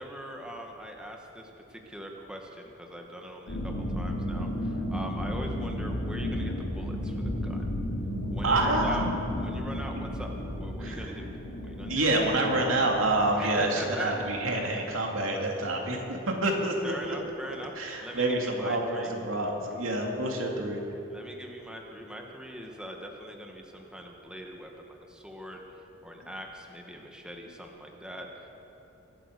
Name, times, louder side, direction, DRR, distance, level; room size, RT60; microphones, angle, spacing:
voice 1, 0.0-7.7 8.3-10.3 10.6-11.3 11.6-12.1 13.4-14.2 16.8-17.7 18.0-19.1 21.1-25.6 26.0-28.5, equal, 5° right, 1 dB, 1.3 m, -42 dB
sound 1, 3.5-14.7, left 1 dB, 80° left, 3.2 m, -33 dB
voice 2, 8.4-9.0 10.8-11.1 11.9-17.2 17.8-20.8, right 2 dB, 85° right, 0 dB, 2.5 m, -27 dB
24.0 x 8.8 x 6.6 m, 3.0 s
head